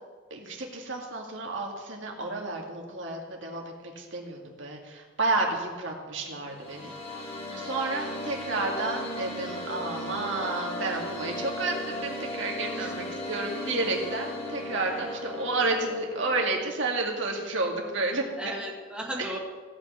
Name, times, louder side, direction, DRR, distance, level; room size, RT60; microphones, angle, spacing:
voice 1, 0.3-18.5 19.2-19.3, right 2 dB, 70° right, 0 dB, 2.3 m, -31 dB
sound 1, 6.3-16.6, left 1 dB, 30° left, 2.0 m, -36 dB
voice 2, 18.4-19.4, right 1 dB, 5° right, -3 dB, 2.0 m, -36 dB
16.0 x 6.2 x 8.7 m, 1.5 s
head